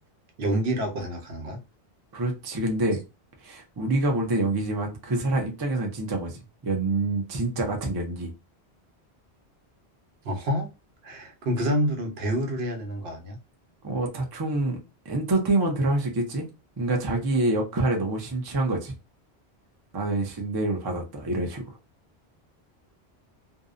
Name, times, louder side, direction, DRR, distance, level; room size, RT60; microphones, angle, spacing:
voice 1, 0.4-1.6 10.2-10.7 11.0-13.4, right 1 dB, 70° right, 0.9 m, -28 dB
voice 2, 2.1-3.0 3.4-6.4 6.6-8.3 13.8-14.8 15.1-16.4 16.8-18.9 19.9-21.6, right 2 dB, 30° right, 0.4 m, -26 dB
2.6 x 2.0 x 2.4 m
omnidirectional pair, 1.1 m